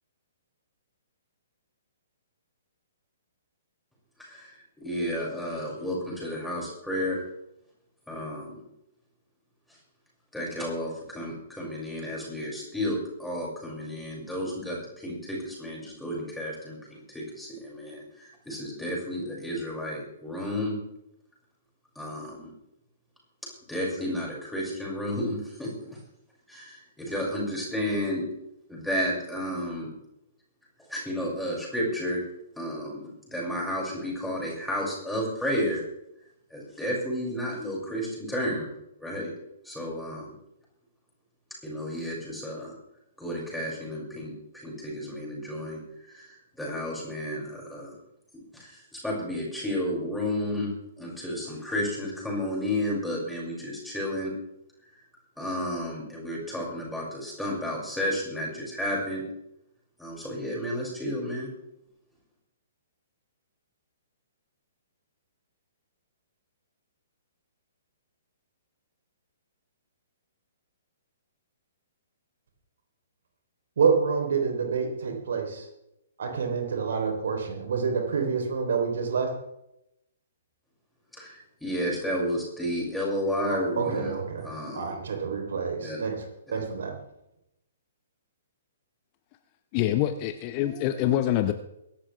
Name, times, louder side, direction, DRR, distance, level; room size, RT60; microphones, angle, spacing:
voice 1, 4.2-7.2 8.1-8.6 10.3-18.0 18.4-20.8 22.0-22.5 23.7-25.7 26.5-28.2 28.7-29.9 30.9-32.2 32.6-35.8 36.5-38.7 39.0-39.3 39.6-40.2 41.6-42.7 43.2-47.9 48.3-54.3 55.4-59.2 60.0-61.5 81.1-84.1 84.4-85.0 85.8-86.0 86.5-86.6, equal, ahead, -4 dB, 6.1 m, -32 dB
voice 2, 73.8-75.7 76.2-79.3 83.5-84.5 84.7-86.2 86.5-86.9, right 5 dB, 55° right, 3 dB, 3.5 m, -27 dB
voice 3, 89.7-91.5, left 12 dB, 30° left, 10 dB, 0.8 m, -25 dB
23.0 x 12.0 x 3.4 m, 0.84 s
figure-of-eight pair, 120°, 0 cm